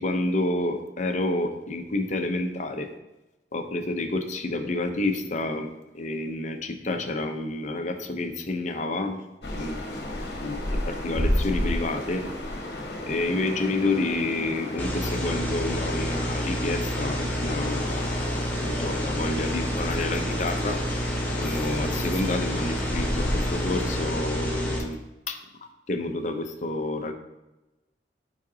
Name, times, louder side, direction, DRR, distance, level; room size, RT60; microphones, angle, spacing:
voice 1, 0.0-2.9 3.5-9.2 9.5-9.8 10.4-12.3 13.0-20.8 21.3-25.0 25.3-25.4 25.9-27.1, left 2 dB, 45° left, 5 dB, 0.6 m, -29 dB
sound 1, 9.4-24.2, left 1 dB, 65° left, 1.1 m, -33 dB
sound 2, 14.8-24.8, equal, 10° left, 0.9 m, -29 dB
8.0 x 4.9 x 2.7 m, 1.0 s
head